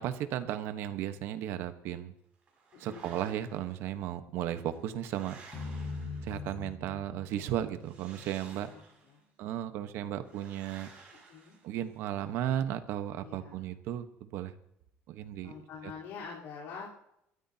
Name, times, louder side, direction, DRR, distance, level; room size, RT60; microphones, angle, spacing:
voice 1, 0.0-2.1 2.8-5.4 6.2-8.7 9.4-10.9 11.6-14.5 15.1-15.5, right 11 dB, 65° right, 9 dB, 1.2 m, -35 dB
sound 1, 2.5-3.7 4.5-6.7 7.8-9.2 10.2-12.1, right 4 dB, 25° right, 6.1 m, -55 dB
voice 2, 2.8-3.2 8.4-9.2 11.3-11.6 13.2-13.7 15.4-16.9, left 5 dB, 65° left, -5 dB, 4.0 m, -46 dB
sound 2, 5.5-8.7, left 3 dB, 25° left, 6.2 m, -42 dB
27.0 x 13.5 x 2.9 m, 0.77 s
cardioid pair, 170°, 5 cm